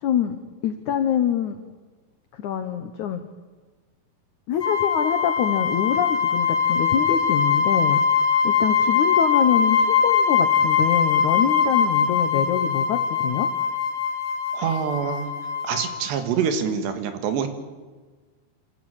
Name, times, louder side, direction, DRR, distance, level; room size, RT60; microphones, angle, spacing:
voice 1, 0.0-1.6 2.3-3.3 4.5-8.0 8.4-13.5, left 9 dB, 85° left, 8 dB, 1.7 m, -25 dB
sound 1, 4.6-16.0, left 6 dB, 15° left, 3.7 m, -22 dB
voice 2, 14.5-15.3 15.6-17.5, right 7 dB, 80° right, 8 dB, 3.7 m, -25 dB
26.0 x 13.0 x 9.0 m, 1.3 s
omnidirectional pair, 4.9 m